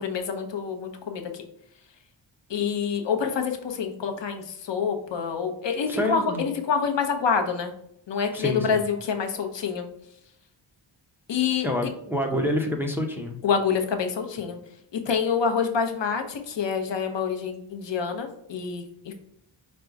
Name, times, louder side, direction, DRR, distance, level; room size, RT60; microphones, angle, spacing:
voice 1, 0.0-1.4 2.5-7.7 8.1-9.9 11.3-11.9 13.4-14.6 14.9-19.1, left 6 dB, 65° left, 4 dB, 0.8 m, -27 dB
voice 2, 5.9-6.4 8.3-8.7 11.6-13.4, left 1 dB, 5° right, 2 dB, 0.6 m, -27 dB
5.1 x 2.3 x 4.6 m, 0.74 s
wide cardioid pair, 145°, 47 cm